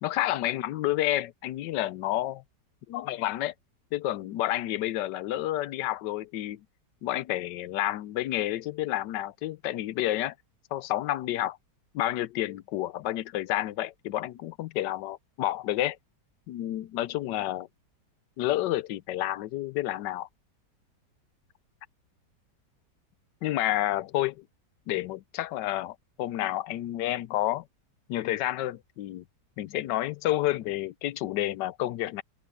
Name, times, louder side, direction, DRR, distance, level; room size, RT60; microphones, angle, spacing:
voice 1, 0.0-2.4 2.9-3.5 3.9-6.6 7.0-10.3 10.7-11.6 11.9-16.0 16.5-17.7 18.4-20.3 23.4-24.4 24.9-27.6 28.1-29.2 29.6-32.2, left 14 dB, 85° left, 1.3 m, -30 dB
omnidirectional pair, 1.8 m